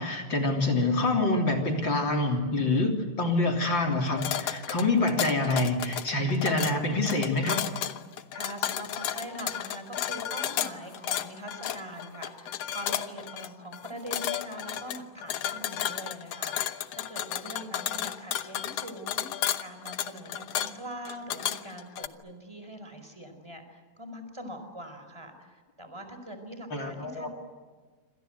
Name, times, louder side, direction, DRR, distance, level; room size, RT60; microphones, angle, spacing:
voice 1, 0.0-7.6 26.7-27.3, left 2 dB, 30° left, 2 dB, 3.6 m, -26 dB
sound 1, 4.1-22.1, left 11 dB, 75° left, 1.5 m, -33 dB
voice 2, 8.3-27.3, right 1 dB, 5° right, 7 dB, 4.5 m, -43 dB
27.5 x 26.5 x 8.1 m, 1.5 s
omnidirectional pair, 4.2 m